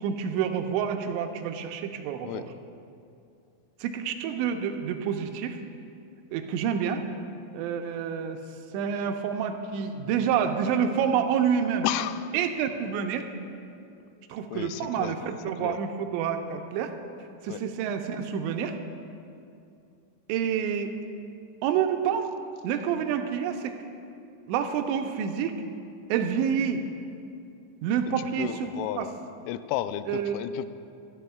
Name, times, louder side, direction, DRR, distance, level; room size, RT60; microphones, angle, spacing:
voice 1, 0.0-2.5 3.8-5.6 6.3-7.0 7.5-8.4 8.7-11.9 12.3-13.3 14.3-16.9 17.4-18.8 20.3-20.9 21.6-22.3 22.6-23.8 24.5-25.6 26.1-26.8 27.8-29.1 30.1-30.4, right 7 dB, 80° right, 6 dB, 2.7 m, -28 dB
voice 2, 11.8-12.3 14.5-15.2 15.6-15.8 17.5-17.6 28.2-29.1 29.5-30.7, left 12 dB, 85° left, 11 dB, 3.1 m, -32 dB
23.5 x 12.5 x 2.3 m, 2.5 s
omnidirectional pair, 5.6 m